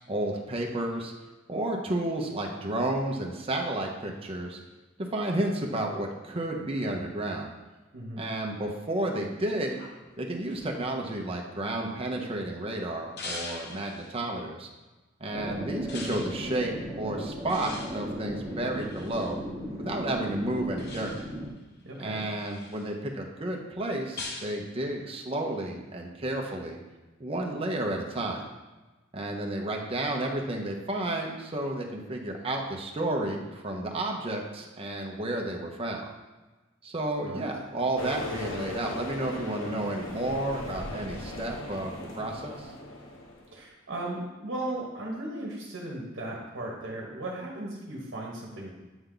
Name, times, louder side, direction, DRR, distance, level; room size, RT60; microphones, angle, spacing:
voice 1, 0.1-1.1 1.5-4.6 5.0-7.5 8.2-9.8 10.2-14.7 15.2-19.4 19.8-21.1 22.0-26.8 27.2-28.5 29.1-36.0 36.8-42.7, right 1 dB, 30° right, 1 dB, 0.7 m, -31 dB
voice 2, 7.9-8.3 21.8-22.3 37.2-37.4 43.5-48.7, right 1 dB, 60° right, -2 dB, 1.1 m, -36 dB
sound 1, 9.8-12.4 13.2-14.2 15.9-16.4 17.5-19.4 20.8-21.4 22.0-22.9 24.2-24.6, left 3 dB, 55° left, 0.8 m, -42 dB
sound 2, 15.3-21.5, equal, 20° left, 1.6 m, -37 dB
sound 3, 38.0-43.5, left 2 dB, 90° left, 1.0 m, -38 dB
8.0 x 3.4 x 3.8 m, 1.2 s
head